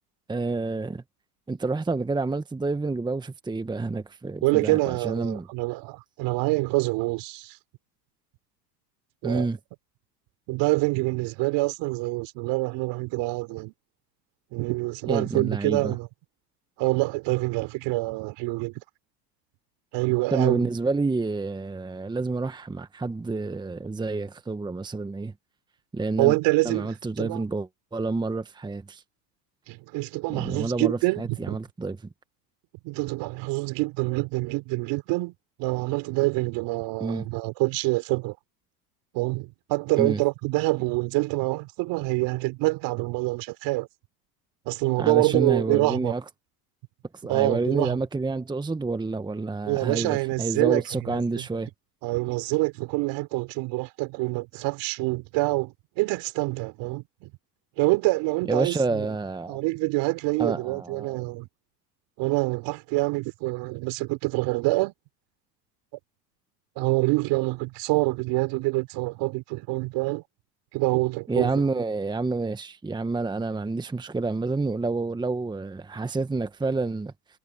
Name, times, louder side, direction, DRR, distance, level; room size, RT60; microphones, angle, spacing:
voice 1, 0.3-1.0 1.5-5.5 9.2-9.6 15.1-16.0 20.3-25.3 25.9-26.4 26.6-29.0 30.3-32.0 37.0-37.3 40.0-40.2 45.0-46.2 47.1-51.7 58.5-59.6 60.4-61.2 71.3-77.1, right 3 dB, 10° right, 1.2 m, -28 dB
voice 2, 4.4-7.6 9.2-9.5 10.5-13.7 14.5-16.1 16.8-18.7 19.9-20.7 26.2-27.4 29.7-31.6 32.8-35.3 35.6-38.4 39.1-43.9 44.7-46.1 47.3-48.0 49.7-51.4 52.0-57.3 57.8-59.1 59.5-61.5 62.2-64.9 66.8-70.2 70.7-71.5, right 23 dB, 55° right, 3.7 m, -26 dB
hypercardioid pair, 100°, 49 cm